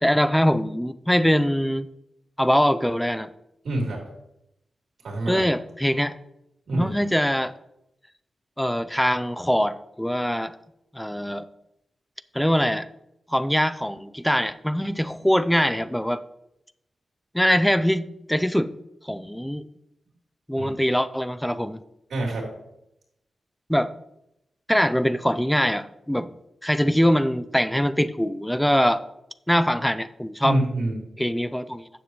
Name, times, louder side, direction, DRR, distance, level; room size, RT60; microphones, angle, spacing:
voice 1, 0.0-1.9 2.4-3.3 5.3-6.2 6.7-7.5 8.6-10.5 10.9-11.4 12.3-12.9 13.3-16.2 17.3-18.7 19.0-19.6 20.5-21.8 23.7-23.9 24.7-26.3 26.6-29.0 29.5-30.6 31.2-31.9, equal, 5° left, 14 dB, 0.5 m, -23 dB
voice 2, 3.6-4.0 5.0-5.4 6.7-6.9 20.6-20.7 22.1-22.5 30.4-31.1, right 1 dB, 85° right, -1 dB, 3.3 m, -26 dB
10.0 x 7.3 x 3.1 m, 0.82 s
wide cardioid pair, 100°, 0 cm